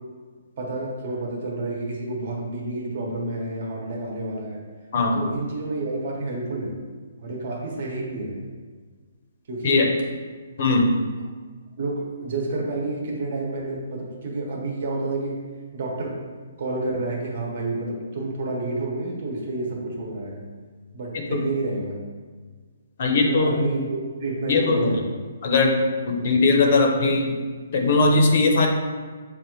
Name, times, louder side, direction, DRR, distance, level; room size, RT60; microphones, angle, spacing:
voice 1, 0.6-4.6 5.1-6.8 7.2-8.4 9.5-9.8 11.8-15.4 15.7-16.2 16.6-20.4 20.9-22.0 23.2-25.2 26.1-26.3, right 2 dB, 50° right, -2 dB, 1.0 m, -29 dB
voice 2, 10.6-10.9 21.3-21.5 23.0-23.5 24.5-25.0 25.4-25.7 26.0-27.3 27.7-28.7, left 3 dB, 50° left, 2 dB, 0.7 m, -19 dB
6.8 x 2.4 x 3.1 m, 1.5 s
hypercardioid pair, 155°, 0 cm